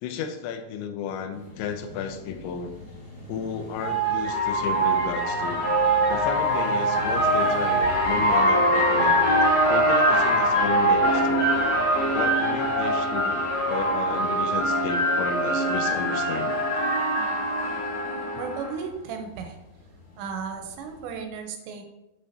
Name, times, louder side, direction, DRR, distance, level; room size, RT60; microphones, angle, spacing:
voice 1, 0.0-2.7 3.3-5.6 6.1-9.2 9.7-11.5 12.1-16.6, left 7 dB, 80° left, 7 dB, 2.8 m, -33 dB
sound 1, 1.6-1.7 3.1-18.7, right 1 dB, 40° left, 2.0 m, -23 dB
voice 2, 18.0-19.6 20.2-21.8, right 5 dB, 80° right, 4 dB, 2.8 m, -35 dB
8.9 x 6.8 x 2.8 m, 0.96 s
omnidirectional pair, 5.6 m